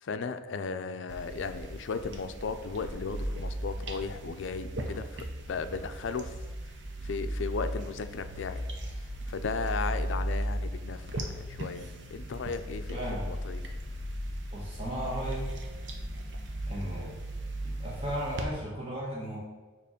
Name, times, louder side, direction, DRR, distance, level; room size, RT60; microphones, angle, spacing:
voice 1, 0.0-6.4 7.0-8.6 9.3-13.0 13.3-13.6, left 4 dB, 75° left, 10 dB, 0.4 m, -36 dB
sound 1, 1.1-18.4, right 1 dB, 65° right, 0.7 m, -36 dB
voice 2, 12.9-13.3 14.5-15.5 16.6-17.1 17.6-19.4, equal, 30° right, -4 dB, 1.1 m, -35 dB
6.8 x 3.0 x 5.0 m, 1.3 s
head